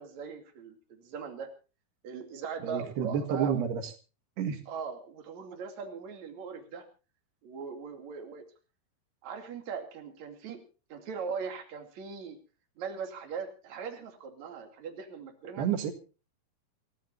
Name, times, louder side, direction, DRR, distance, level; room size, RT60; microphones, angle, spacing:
voice 1, 0.0-1.5 2.0-3.7 4.7-6.8 7.4-8.5 9.2-10.6 10.9-12.4 12.8-15.7, right 6 dB, 50° right, 4 dB, 3.6 m, -40 dB
voice 2, 2.6-3.9 4.4-4.6 15.6-15.9, right 8 dB, 90° right, 6 dB, 3.8 m, -30 dB
28.0 x 14.5 x 2.7 m, 0.34 s
omnidirectional pair, 4.5 m